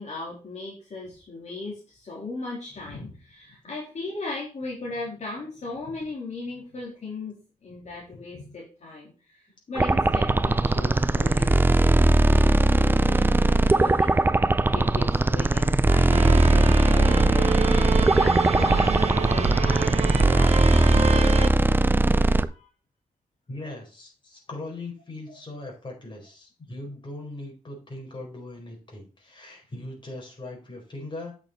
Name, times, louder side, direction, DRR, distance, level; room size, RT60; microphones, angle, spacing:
voice 1, 0.0-21.6 22.0-22.7 25.3-25.4, left 2 dB, 50° left, -4 dB, 3.4 m, -38 dB
sound 1, 9.7-22.5, right 2 dB, 15° right, 0.5 m, -20 dB
sound 2, 16.1-21.5, right 4 dB, 45° right, 1.0 m, -26 dB
voice 2, 23.5-31.3, left 2 dB, 30° left, -1 dB, 4.7 m, -39 dB
8.7 x 6.4 x 4.1 m, 0.35 s
wide cardioid pair, 115°, 15 cm